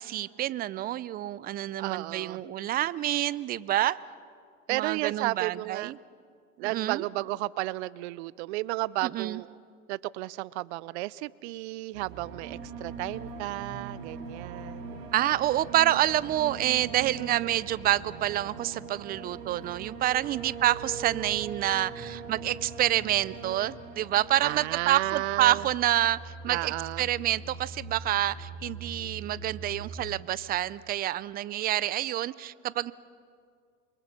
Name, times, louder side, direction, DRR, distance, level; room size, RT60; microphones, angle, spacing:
voice 1, 0.0-4.0 4.7-6.0 6.6-7.0 9.1-9.4 15.1-32.9, right 13 dB, 25° right, 20 dB, 0.5 m, -28 dB
voice 2, 1.8-2.4 4.7-6.0 6.6-9.6 9.9-15.0 24.4-25.7 26.5-27.1, right 19 dB, 60° right, 22 dB, 0.6 m, -33 dB
sound 1, 11.9-30.0, right 4 dB, 85° right, 4.2 m, -42 dB
28.0 x 23.0 x 6.0 m, 2.2 s
hypercardioid pair, 115°, 39 cm